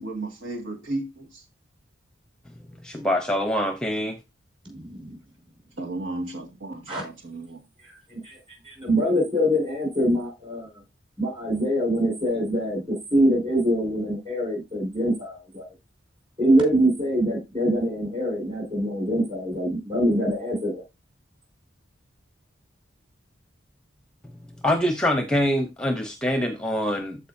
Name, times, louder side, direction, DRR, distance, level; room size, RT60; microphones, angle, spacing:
voice 1, 0.0-1.4 5.8-7.6, right 2 dB, 80° right, 2.0 m, -34 dB
voice 2, 2.8-4.2 24.6-27.2, equal, 5° left, 0.7 m, -24 dB
voice 3, 4.7-5.2 6.9-7.0 8.1-8.4 8.6-10.8 11.2-15.7 16.4-20.8, equal, 25° right, 5.2 m, -24 dB
14.0 x 4.9 x 2.6 m
head